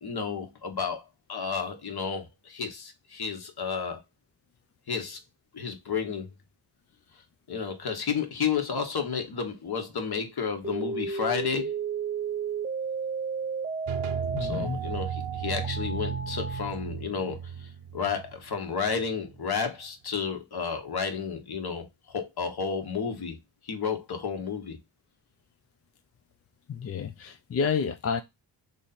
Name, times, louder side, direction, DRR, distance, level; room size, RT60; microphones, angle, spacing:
voice 1, 0.0-4.0 4.9-5.2 5.5-6.3 7.5-11.7 14.4-23.4 23.6-24.8, left 6 dB, 50° left, 1.2 m, -32 dB
sound 1, 10.6-16.7, right 4 dB, 15° right, 0.9 m, -33 dB
sound 2, 13.9-19.6, right 8 dB, 80° right, 0.8 m, -36 dB
voice 2, 14.3-14.8 26.7-28.2, left 6 dB, 35° left, 0.4 m, -29 dB
3.1 x 2.7 x 4.0 m
cardioid pair, 70°, 48 cm